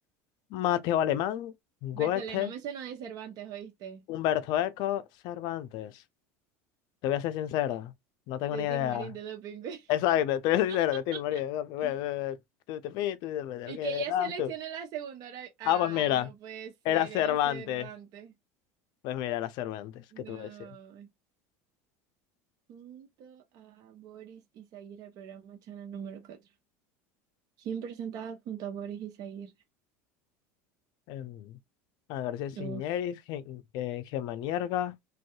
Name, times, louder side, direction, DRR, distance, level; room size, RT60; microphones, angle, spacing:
voice 1, 0.5-1.5 1.8-2.5 4.1-5.9 7.0-7.9 8.3-9.1 9.9-12.4 12.7-14.5 15.6-16.3 16.9-17.9 19.0-20.7 31.1-31.6 32.1-34.9, left 12 dB, 60° left, 0.4 m, -30 dB
voice 2, 1.9-4.0 8.5-9.9 10.7-10.8 11.1-11.4 11.8-12.0 13.7-18.3 20.1-21.1 22.7-26.4 27.6-29.5 32.6-32.9, right 8 dB, 55° right, 0.7 m, -41 dB
2.6 x 2.3 x 2.3 m
supercardioid pair, 95°, 8 cm